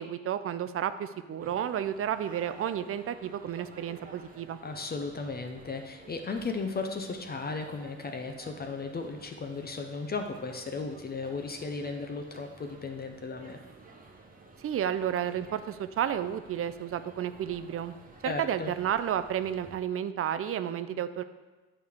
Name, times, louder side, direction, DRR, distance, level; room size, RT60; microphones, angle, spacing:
voice 1, 0.0-4.6 14.6-18.0 18.2-21.2, right 9 dB, 50° right, 12 dB, 0.4 m, -31 dB
sound 1, 1.4-19.8, right 3 dB, 30° right, 1.0 m, -53 dB
voice 2, 4.6-13.6 18.2-18.7, left 4 dB, 30° left, 5 dB, 0.6 m, -35 dB
8.6 x 4.7 x 3.6 m, 1.2 s
cardioid pair, 90°, 30 cm